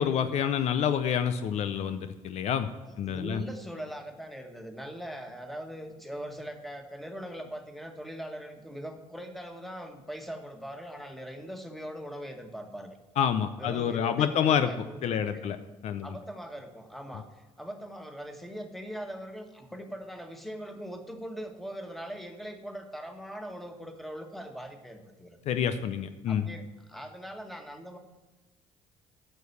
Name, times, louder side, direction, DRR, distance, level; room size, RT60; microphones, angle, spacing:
voice 1, 0.0-2.7 3.0-3.4 13.2-14.7 15.0-15.6 15.8-16.1 25.5-26.5, left 8 dB, 65° left, 10 dB, 0.6 m, -27 dB
voice 2, 2.9-13.0 13.6-15.4 16.0-25.4 26.3-28.0, equal, ahead, 5 dB, 1.7 m, -41 dB
9.1 x 6.7 x 6.9 m, 1.2 s
supercardioid pair, 70°, 12 cm